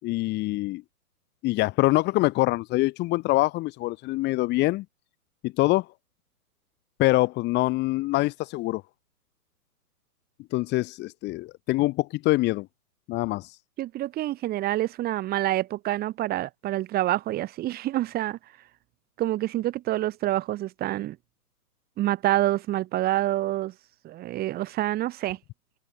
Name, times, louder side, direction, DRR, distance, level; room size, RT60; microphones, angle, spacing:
voice 1, 0.0-0.8 1.4-4.8 5.4-5.9 7.0-8.8 10.5-12.7 13.1-13.5, left 19 dB, 20° left, 4.6 m, -24 dB
voice 2, 13.8-18.4 19.2-21.2 22.0-23.7 24.0-25.4, right 15 dB, 20° right, 6.7 m, -27 dB
open air
hypercardioid pair, 140°, 46 cm